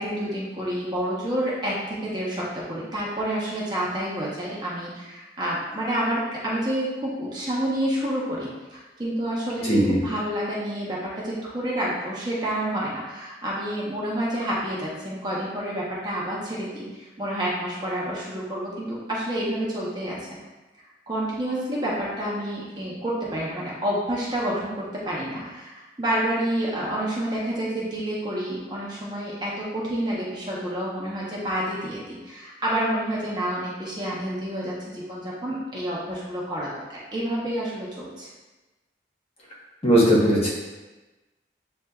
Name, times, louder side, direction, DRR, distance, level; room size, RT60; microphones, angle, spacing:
voice 1, 0.0-20.3 21.1-38.3, right 1 dB, 25° right, -6 dB, 0.8 m, -29 dB
voice 2, 9.6-10.0 39.8-40.5, equal, 35° left, -5 dB, 1.0 m, -18 dB
7.4 x 2.6 x 2.3 m, 1.2 s
head